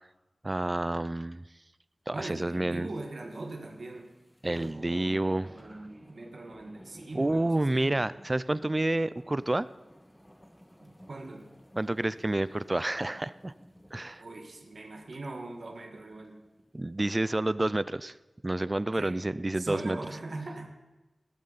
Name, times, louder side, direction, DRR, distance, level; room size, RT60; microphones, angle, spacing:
voice 1, 0.4-1.4 2.1-2.9 4.4-5.8 7.1-9.7 11.8-13.5 13.9-14.2 16.7-18.1 18.4-20.0, right 2 dB, 30° right, 17 dB, 0.4 m, -29 dB
voice 2, 2.1-4.1 4.4-8.0 10.8-11.5 14.2-16.4 19.0-19.2 19.5-20.7, right 2 dB, 70° right, 2 dB, 1.7 m, -41 dB
sound 1, 2.2-16.7 17.1-17.2, equal, 10° left, 1.6 m, -56 dB
15.5 x 14.0 x 4.1 m, 1.1 s
wide cardioid pair, 60°, 0 cm